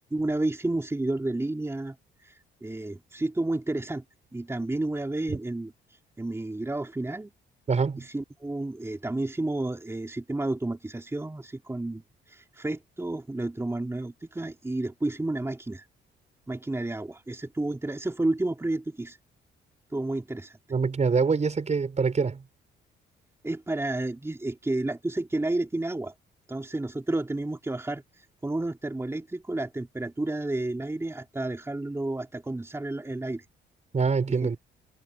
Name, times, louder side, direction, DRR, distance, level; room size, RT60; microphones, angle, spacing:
voice 1, 0.1-4.0 4.3-7.3 8.0-15.9 16.5-19.2 19.9-20.6 23.4-26.1 26.5-33.4 34.4-34.6, right 2 dB, 15° right, 3.3 m, -31 dB
voice 2, 7.7-8.0 20.7-22.4 33.9-34.6, right 5 dB, 35° right, 4.9 m, -25 dB
cardioid pair, 90°, 20 cm